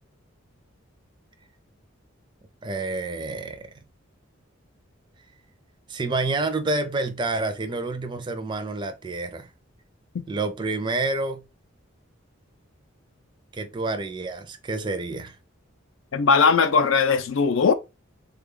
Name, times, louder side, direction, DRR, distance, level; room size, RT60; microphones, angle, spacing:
voice 1, 2.6-3.7 5.9-9.5 10.3-11.5 13.5-15.4, right 3 dB, 20° right, 0.4 m, -28 dB
voice 2, 16.1-17.7, left 5 dB, 70° left, 0.5 m, -19 dB
3.4 x 2.3 x 3.6 m
head